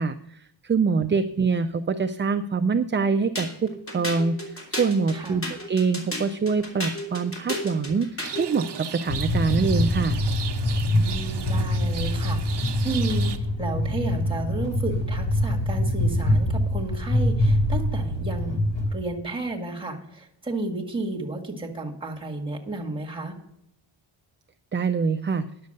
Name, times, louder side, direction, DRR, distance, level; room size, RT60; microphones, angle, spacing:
voice 1, 0.0-10.2 24.7-25.5, right 4 dB, 25° right, 8 dB, 0.3 m, -25 dB
sound 1, 3.3-8.5, equal, 25° left, 3.2 m, -33 dB
voice 2, 5.1-5.4 10.8-18.6 18.9-23.4, right 2 dB, 10° right, 0 dB, 1.8 m, -32 dB
Rain, 8.2-13.4, right 8 dB, 55° right, 1.0 m, -36 dB
sound 2, 9.1-18.9, left 1 dB, 70° left, 3.2 m, -24 dB
10.5 x 6.7 x 6.5 m, 0.80 s
wide cardioid pair, 130°, 48 cm